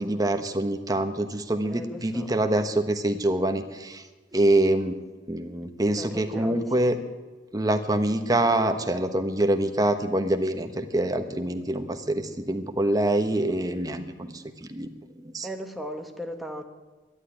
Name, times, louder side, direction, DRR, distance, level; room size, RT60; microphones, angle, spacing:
voice 1, 0.0-4.0 4.3-4.9 5.3-7.0 7.5-14.9 15.1-15.5, right 1 dB, 20° right, 6 dB, 1.1 m, -25 dB
voice 2, 1.7-2.3 6.0-6.6 15.4-16.6, equal, ahead, 4 dB, 1.3 m, -37 dB
12.0 x 11.0 x 10.0 m, 1.2 s
head